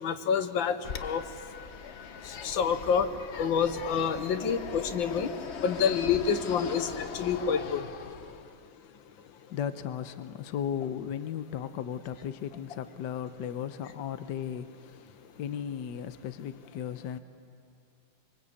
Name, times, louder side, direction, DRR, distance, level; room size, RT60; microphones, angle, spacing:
voice 1, 0.0-0.7 1.0-1.2 2.3-3.1 3.3-5.3 5.6-7.8, left 7 dB, 85° left, 9 dB, 1.8 m, -27 dB
Fixed-wing aircraft airplane, 0.8-8.6, left 6 dB, 50° left, 0.8 m, -41 dB
voice 2, 9.5-15.0 15.4-17.2, left 9 dB, 70° left, 11 dB, 1.4 m, -36 dB
25.0 x 24.0 x 8.5 m, 2.2 s
omnidirectional pair, 2.1 m